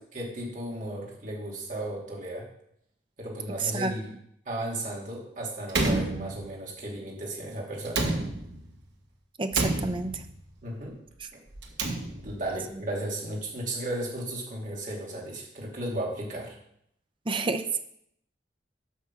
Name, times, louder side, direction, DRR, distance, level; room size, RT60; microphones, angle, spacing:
voice 1, 0.1-2.5 3.2-4.1 4.4-8.0 10.6-11.0 12.2-16.5, right 1 dB, 50° right, -3 dB, 2.7 m, -35 dB
Slam, 5.7-6.8 7.8-8.8 9.5-10.4 11.5-12.5, right 2 dB, 75° right, 1.4 m, -30 dB
voice 2, 9.4-10.2 17.3-17.8, right 3 dB, 30° right, 8 dB, 0.7 m, -29 dB
8.3 x 6.0 x 6.0 m, 0.72 s
head